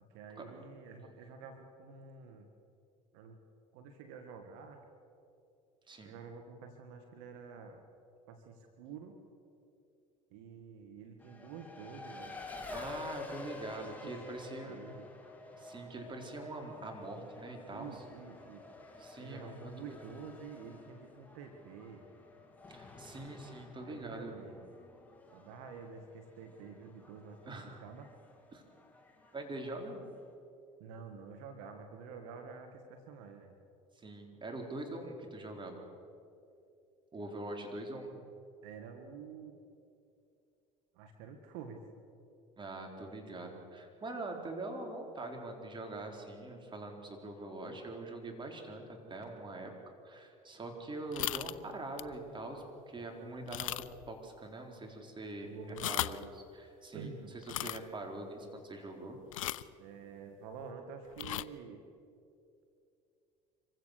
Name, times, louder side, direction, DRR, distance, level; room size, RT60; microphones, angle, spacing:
voice 1, 0.1-2.5 3.1-3.4 3.7-4.8 6.0-7.8 8.3-9.2 10.3-12.4 13.8-15.1 17.7-18.6 19.2-22.1 23.7-24.7 25.3-28.1 30.8-33.5 38.6-39.6 40.9-41.8 55.4-55.9 56.9-57.4 59.8-61.8, right 5 dB, 75° right, 5 dB, 1.8 m, -49 dB
Race car auto racing, 11.2-30.3, left 3 dB, 10° left, 3.1 m, -50 dB
voice 2, 12.7-14.8 15.6-18.0 19.0-20.0 22.7-24.4 27.4-27.9 28.5-28.6 29.3-30.0 33.9-35.8 37.1-38.1 42.6-48.8 49.1-53.7 54.1-55.5 55.9-59.2, right 2 dB, 30° right, 3 dB, 4.2 m, -43 dB
sound 1, 51.1-51.6 52.0-52.2 52.6-52.7 53.5-54.1 54.4-54.5 55.6-56.3 57.4-57.8 59.3-59.7 61.1-61.4, left 14 dB, 85° left, 0.5 m, -37 dB
25.5 x 16.0 x 6.8 m, 2.6 s
hypercardioid pair, 70°, 17 cm